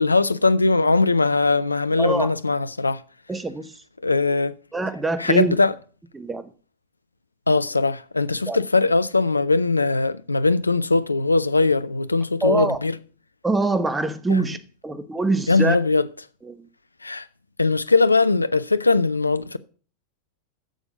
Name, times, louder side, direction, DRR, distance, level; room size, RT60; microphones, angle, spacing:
voice 1, 0.0-3.0 4.0-4.5 5.2-5.8 7.5-13.0 14.3-14.6 15.5-16.1 17.0-17.3 17.6-19.6, left 3 dB, 80° left, 0.5 m, -20 dB
voice 2, 3.3-3.6 4.7-5.5 6.2-6.4 8.5-8.6 12.4-12.8 13.4-14.6 14.8-15.8 16.5-16.6, right 2 dB, 10° right, 1.1 m, -23 dB
11.0 x 7.1 x 6.6 m
figure-of-eight pair, 90°, 0 cm